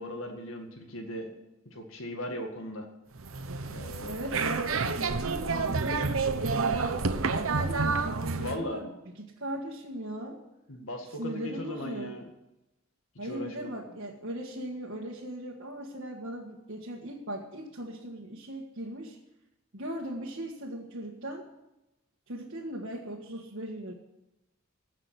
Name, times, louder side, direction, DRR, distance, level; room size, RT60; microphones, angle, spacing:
voice 1, 0.0-1.3 1.7-2.9 3.7-4.2 8.4-8.8 10.7-12.2 13.2-13.7, left 1 dB, 80° left, 3 dB, 1.9 m, -38 dB
sound 1, 3.2-8.6, right 4 dB, 80° right, 0.9 m, -29 dB
voice 2, 4.1-6.0 6.4-8.9 9.4-10.4 11.2-12.1 13.2-19.2 19.7-21.4 22.3-23.9, right 1 dB, 65° right, -4 dB, 1.7 m, -38 dB
16.0 x 6.0 x 9.6 m, 0.93 s
head